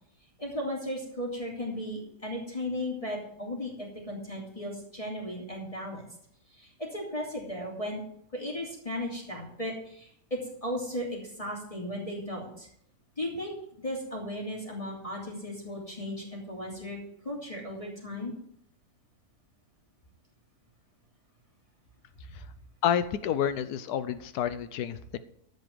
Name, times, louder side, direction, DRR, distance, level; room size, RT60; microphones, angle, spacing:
voice 1, 0.4-6.0 6.5-8.0 8.3-12.7 13.2-13.5 13.8-17.0 17.2-18.3, left 1 dB, 20° left, -4 dB, 3.1 m, -36 dB
voice 2, 22.8-25.2, left 9 dB, 90° left, 13 dB, 1.2 m, -29 dB
15.0 x 5.3 x 7.7 m, 0.70 s
omnidirectional pair, 1.6 m